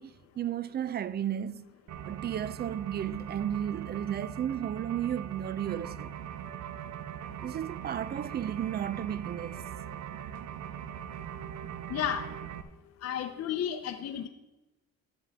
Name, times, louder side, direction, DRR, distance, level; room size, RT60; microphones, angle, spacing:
voice 1, 0.0-1.7 2.0-6.1 7.4-9.6, right 10 dB, 35° right, 0.4 m, -33 dB
sound 1, 1.9-12.6, right 10 dB, 70° right, 0.6 m, -41 dB
voice 2, 11.9-12.3 13.0-14.3, left 9 dB, 55° left, 0.6 m, -32 dB
12.5 x 7.6 x 3.4 m
cardioid pair, 90°, 30 cm